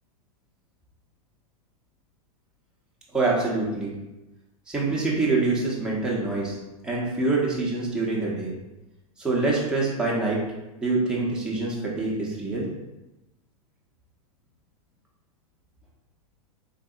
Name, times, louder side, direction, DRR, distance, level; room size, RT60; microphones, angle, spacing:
voice 1, 3.1-3.9 4.7-6.6 6.8-8.5 9.2-10.4 10.8-12.7, right 3 dB, 5° right, -5 dB, 0.8 m, -25 dB
3.7 x 2.6 x 2.4 m, 1.0 s
hypercardioid pair, 120°, 19 cm